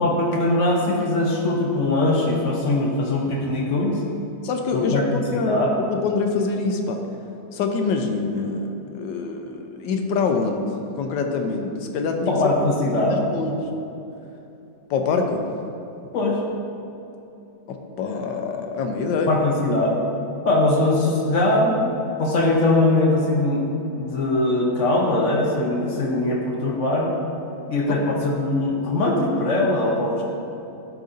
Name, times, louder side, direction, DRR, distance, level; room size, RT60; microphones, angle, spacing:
voice 1, 0.0-4.0 4.7-5.7 12.3-13.3 16.1-16.4 19.3-20.0 20.4-21.8 22.2-23.7 24.0-27.2 27.7-30.2, left 2 dB, 60° left, -1 dB, 0.8 m, -21 dB
voice 2, 4.4-7.0 7.5-12.3 13.1-13.7 14.9-15.4 17.7-19.4 27.9-28.0, left 4 dB, 80° left, 4 dB, 1.3 m, -25 dB
11.5 x 4.0 x 2.5 m, 2.9 s
omnidirectional pair, 1.9 m